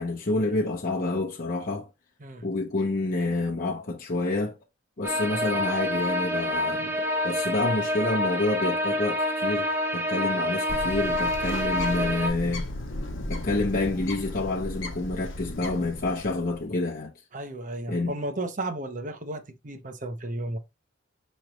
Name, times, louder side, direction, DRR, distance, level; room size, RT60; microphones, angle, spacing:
voice 1, 0.0-1.9 2.4-4.5 5.0-6.9 7.2-12.6 13.3-17.1 17.9-18.1, left 2 dB, 45° left, 0.8 m, -28 dB
sound 1, 5.0-12.3, left 1 dB, 10° right, 0.9 m, -27 dB
Bird, 10.7-16.6, left 1 dB, 85° left, 0.9 m, -35 dB
voice 2, 17.3-20.6, right 2 dB, 40° right, 0.8 m, -34 dB
5.1 x 3.2 x 3.1 m
head